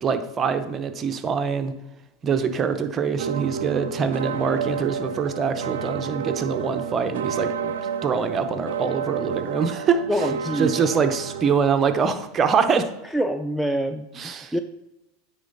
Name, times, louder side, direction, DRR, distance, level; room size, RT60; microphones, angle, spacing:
voice 1, 0.0-1.7 2.2-7.7 8.0-10.0 10.6-12.9 14.2-14.5, right 6 dB, 30° right, 8 dB, 0.7 m, -24 dB
sound 1, 3.2-11.6, right 7 dB, 85° right, 0.5 m, -30 dB
voice 2, 10.1-10.8 13.1-14.6, equal, ahead, 8 dB, 0.4 m, -26 dB
9.2 x 4.0 x 3.9 m, 0.90 s
supercardioid pair, 110°, 0 cm